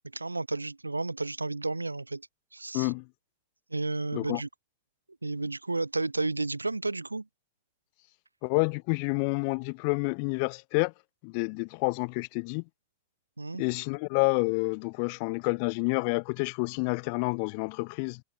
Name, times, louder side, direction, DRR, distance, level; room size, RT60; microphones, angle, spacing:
voice 1, 0.1-2.2 2.5-2.9 3.7-4.5 5.2-7.3 13.4-13.6, right 3 dB, 80° right, 0.5 m, -32 dB
voice 2, 2.7-3.1 4.1-4.4 8.4-10.9 11.2-12.6 13.6-18.2, left 37 dB, 45° left, 0.5 m, -29 dB
figure-of-eight pair, 90°, 0 cm